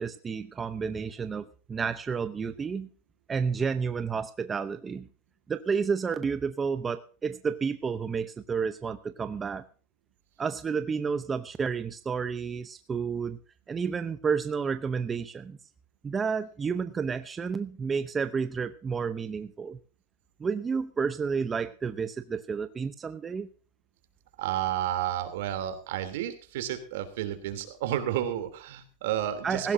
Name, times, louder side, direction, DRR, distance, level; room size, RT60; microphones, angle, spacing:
voice 1, 0.0-2.9 3.3-5.1 5.5-9.6 10.4-13.4 13.7-15.6 16.0-19.8 20.4-23.5 29.4-29.7, right 5 dB, 15° right, 10 dB, 0.7 m, -31 dB
voice 2, 24.4-29.7, right 11 dB, 75° right, 8 dB, 3.1 m, -31 dB
17.5 x 16.0 x 2.7 m, 0.36 s
supercardioid pair, 160°, 0 cm